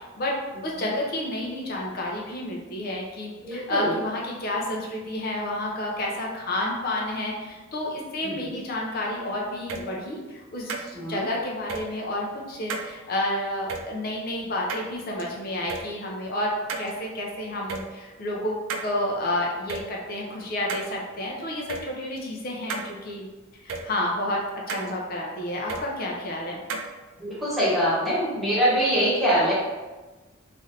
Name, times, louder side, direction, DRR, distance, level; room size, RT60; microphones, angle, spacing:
voice 1, 0.6-23.3 23.6-24.4 24.7-26.6, left 1 dB, 50° left, -2 dB, 0.5 m, -30 dB
voice 2, 3.4-3.9 11.0-11.2 27.2-29.5, equal, ahead, -9 dB, 1.0 m, -23 dB
sound 1, 9.7-9.8 10.7-10.9 11.7-11.8 12.7-12.9 13.7-13.8 14.7-15.2 15.7-15.8 16.7-16.9 17.7-17.8 18.7-18.9 19.7-19.8 20.7-20.9 21.7-21.8 22.7-22.9 23.7-23.8 24.7-24.9 25.7-25.8 26.7-26.9, right 4 dB, 85° right, 0.4 m, -32 dB
3.1 x 2.5 x 2.7 m, 1.2 s
head